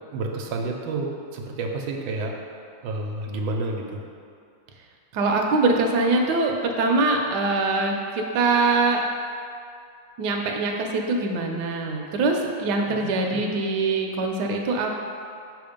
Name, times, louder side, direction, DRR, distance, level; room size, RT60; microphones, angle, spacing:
voice 1, 0.1-2.4 2.8-4.0 12.9-13.5, right 2 dB, 90° right, 1 dB, 1.4 m, -30 dB
voice 2, 5.1-9.0 10.2-15.0, right 3 dB, 70° right, 1 dB, 1.2 m, -23 dB
6.1 x 3.5 x 5.0 m, 2.4 s
omnidirectional pair, 2.1 m